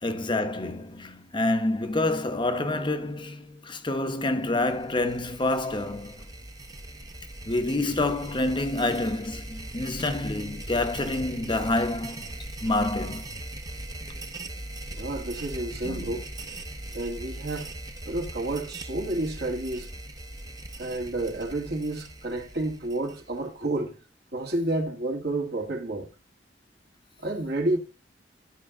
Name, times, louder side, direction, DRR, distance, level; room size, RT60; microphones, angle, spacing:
voice 1, 0.0-6.2 7.4-12.3 12.6-13.3 15.8-16.1, left 2 dB, 30° left, 0.9 m, -27 dB
sound 1, 4.4-23.5, right 1 dB, 20° right, 0.8 m, -40 dB
voice 2, 14.9-16.3 16.9-17.7 18.1-19.9 20.8-24.0 24.3-26.1 27.2-27.8, right 2 dB, 60° right, 1.7 m, -30 dB
12.0 x 4.6 x 3.7 m
head